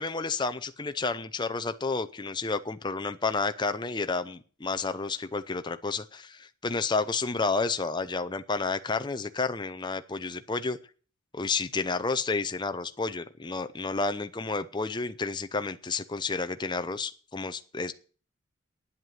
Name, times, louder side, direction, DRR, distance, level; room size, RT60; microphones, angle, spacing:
voice 1, 0.0-10.8 11.3-17.9, left 4 dB, 20° left, 9 dB, 0.6 m, -31 dB
9.8 x 7.9 x 9.2 m, 0.40 s
head